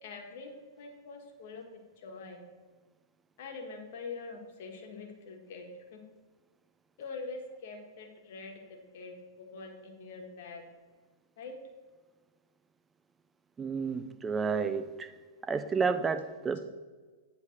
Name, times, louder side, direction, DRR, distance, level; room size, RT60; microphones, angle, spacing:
voice 1, 0.0-2.4 3.4-6.0 7.0-10.6 11.4-11.5, left 4 dB, 55° left, 3 dB, 1.3 m, -44 dB
voice 2, 13.6-15.1 15.5-16.6, right 5 dB, 15° right, 10 dB, 0.5 m, -31 dB
8.0 x 3.4 x 6.4 m, 1.3 s
figure-of-eight pair, 105°, 0 cm